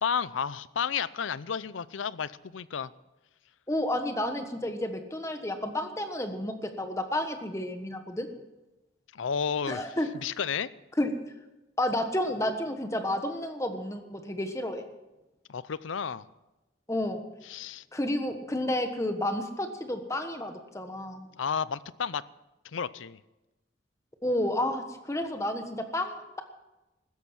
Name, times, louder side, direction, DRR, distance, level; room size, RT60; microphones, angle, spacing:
voice 1, 0.0-2.9 9.1-9.9 10.2-10.7 15.5-16.3 17.4-17.8 21.4-22.2 22.7-23.2, left 7 dB, 90° left, 18 dB, 0.6 m, -32 dB
voice 2, 3.7-8.3 9.7-10.1 11.0-11.1 11.8-14.8 16.9-17.2 17.9-21.3 24.2-26.4, left 1 dB, 15° left, 6 dB, 1.3 m, -31 dB
15.5 x 13.5 x 6.0 m, 1.0 s
head